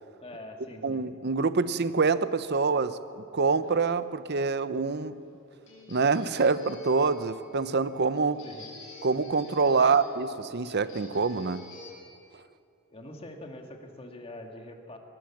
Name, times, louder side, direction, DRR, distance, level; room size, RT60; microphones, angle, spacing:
voice 1, 0.2-1.1 8.4-8.6 9.8-10.0 12.9-15.0, left 1 dB, 30° left, 3 dB, 2.2 m, -43 dB
voice 2, 0.8-5.2 5.9-8.4 9.0-11.7, right 4 dB, 55° right, 14 dB, 0.8 m, -26 dB
sound 1, 3.6-11.9, left 2 dB, 65° left, 7.5 m, -50 dB
23.5 x 19.0 x 7.4 m, 2.5 s
head